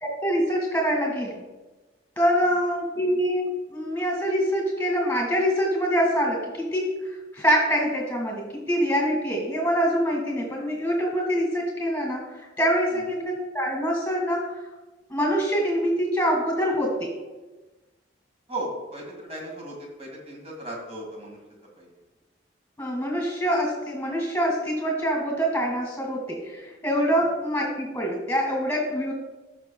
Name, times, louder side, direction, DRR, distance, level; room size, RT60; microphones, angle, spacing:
voice 1, 0.0-1.4 2.2-14.5 15.1-17.1 22.8-29.1, equal, 5° left, 1 dB, 2.0 m, -25 dB
voice 2, 18.5-21.4 21.8-21.9 27.2-27.3, right 1 dB, 35° right, -1 dB, 2.0 m, -37 dB
15.5 x 5.8 x 2.3 m, 1.2 s
head